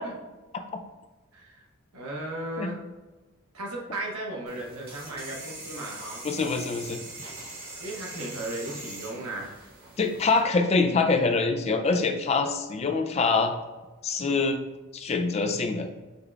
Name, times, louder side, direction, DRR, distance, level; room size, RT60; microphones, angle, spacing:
voice 1, 1.3-1.6 1.9-2.8 3.5-6.3 7.8-9.5, right 1 dB, 90° right, -2 dB, 1.0 m, -36 dB
sound 1, 4.5-10.4, right 2 dB, 45° right, 1.2 m, -42 dB
voice 2, 6.2-7.0 10.0-13.5 14.0-14.6 14.9-16.0, left 4 dB, 30° left, 5 dB, 0.3 m, -25 dB
5.5 x 2.3 x 3.4 m, 1.2 s
head